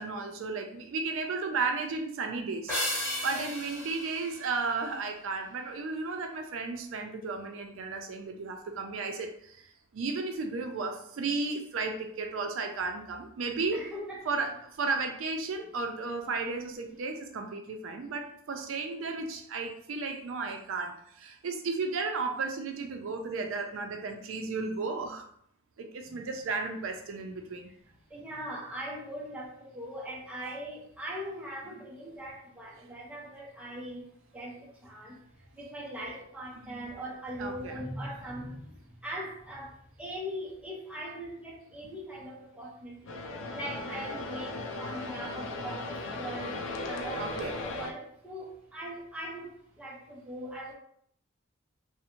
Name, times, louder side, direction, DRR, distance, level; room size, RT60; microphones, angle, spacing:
voice 1, 0.0-13.8 14.3-25.2 25.8-27.7 36.6-36.8 37.4-37.7 47.2-47.5, right 4 dB, 75° right, 5 dB, 0.4 m, -34 dB
sound 1, 2.7-5.3, equal, 10° left, 1.3 m, -35 dB
voice 2, 13.7-14.4 26.1-26.2 27.7-27.8 28.1-43.2 43.5-50.7, equal, 5° right, -4 dB, 0.5 m, -41 dB
sound 2, 43.1-47.9, left 2 dB, 70° left, 0.4 m, -37 dB
2.5 x 2.0 x 2.8 m, 0.66 s
head